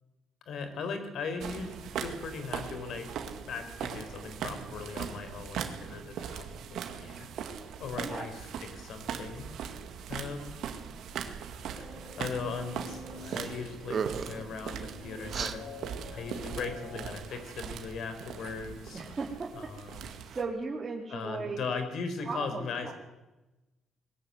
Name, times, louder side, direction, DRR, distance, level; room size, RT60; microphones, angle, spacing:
voice 1, 0.5-3.1 3.5-6.5 6.7-7.4 7.8-9.5 10.1-10.6 11.9-15.6 16.1-19.0 19.5-20.1 21.1-22.9, left 5 dB, 70° left, 8 dB, 4.4 m, -38 dB
sound 1, 1.4-20.4, right 7 dB, 80° right, 2.2 m, -40 dB
sound 2, 11.7-17.2, left 2 dB, 40° left, 5.0 m, -47 dB
sound 3, 13.2-13.5 13.8-14.4 15.3-15.6, right 6 dB, 50° right, 1.3 m, -34 dB
voice 2, 18.9-19.5 19.8-19.9 20.2-21.7 22.3-22.9, right 4 dB, 35° right, -3 dB, 3.5 m, -37 dB
21.5 x 14.5 x 9.6 m, 1.0 s
cardioid pair, 90°, 0 cm